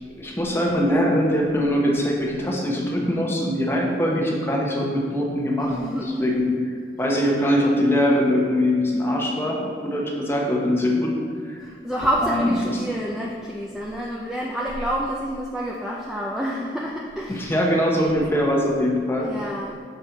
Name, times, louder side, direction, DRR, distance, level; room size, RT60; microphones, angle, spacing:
voice 1, 0.2-5.7 6.0-6.4 7.0-11.1 11.4-11.7 12.2-12.8 17.3-19.3, equal, 15° left, -2 dB, 0.9 m, -22 dB
voice 2, 5.6-6.3 11.6-17.5 19.2-19.8, equal, 5° right, -4 dB, 0.4 m, -28 dB
6.6 x 4.3 x 4.5 m, 2.1 s
head